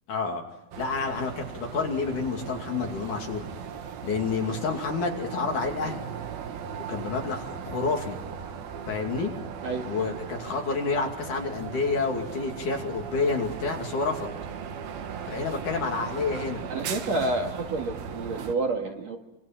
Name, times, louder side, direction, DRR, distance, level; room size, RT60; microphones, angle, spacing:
voice 1, 0.1-0.4 0.8-3.5 4.0-6.1 6.9-8.2 8.9-9.3 9.8-14.3 15.3-16.6, left 4 dB, 60° left, 2 dB, 4.0 m, -29 dB
sound 1, 0.7-18.5, right 7 dB, 85° right, 3.5 m, -38 dB
voice 2, 16.7-19.2, right 2 dB, 50° right, 2 dB, 2.9 m, -29 dB
28.0 x 26.5 x 6.0 m, 0.92 s
omnidirectional pair, 4.2 m